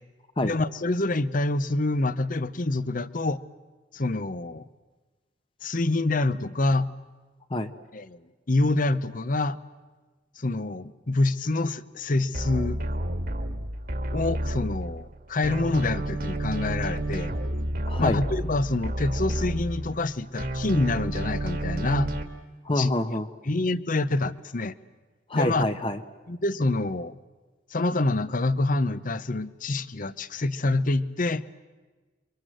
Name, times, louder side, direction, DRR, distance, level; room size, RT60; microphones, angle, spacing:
voice 1, 0.4-3.4 3.9-4.6 5.6-6.9 7.9-8.2 8.5-9.6 10.4-12.8 14.1-17.3 18.0-22.1 22.7-22.9 23.4-24.7 25.3-25.6 26.3-27.2 27.7-31.4, left 2 dB, 45° left, 0.8 m, -26 dB
sound 1, 12.3-15.1 15.4-20.1 20.4-22.2, right 1 dB, 50° right, 2.1 m, -30 dB
voice 2, 17.9-18.2 22.7-23.3 25.3-26.0, left 1 dB, 30° left, 1.0 m, -26 dB
28.5 x 24.5 x 7.8 m
head